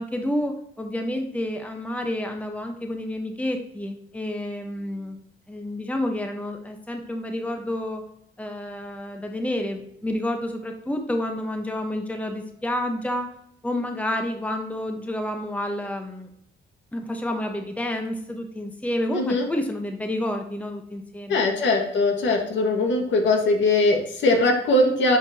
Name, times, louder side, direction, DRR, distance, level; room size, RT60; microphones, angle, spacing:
voice 1, 0.0-5.2 5.5-8.0 8.4-13.3 13.6-16.3 16.9-21.4, left 1 dB, 5° left, 3 dB, 1.1 m, -29 dB
voice 2, 19.1-19.5 21.3-25.2, left 2 dB, 70° left, 2 dB, 1.8 m, -21 dB
11.0 x 4.5 x 2.9 m, 0.73 s
cardioid pair, 90°, 20 cm